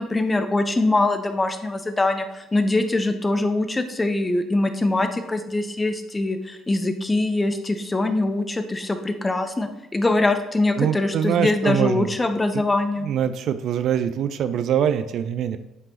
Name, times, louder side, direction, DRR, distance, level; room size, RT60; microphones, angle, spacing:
voice 1, 0.0-13.1, left 2 dB, 20° left, 8 dB, 0.8 m, -23 dB
voice 2, 10.8-12.1 12.5-12.6 13.0-15.6, right 9 dB, 55° right, 11 dB, 0.3 m, -23 dB
9.8 x 5.2 x 2.9 m, 0.99 s
figure-of-eight pair, 50°, 0 cm